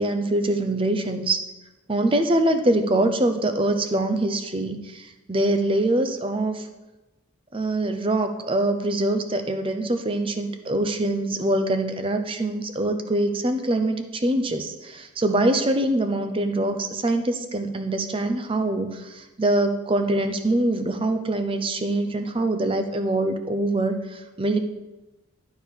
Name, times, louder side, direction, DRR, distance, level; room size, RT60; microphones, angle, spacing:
voice 1, 0.0-1.4 1.9-5.0 5.3-6.6 7.5-19.0 19.4-24.0 24.4-24.6, right 1 dB, 25° right, 7 dB, 0.6 m, -24 dB
11.5 x 4.6 x 5.1 m, 1.1 s
head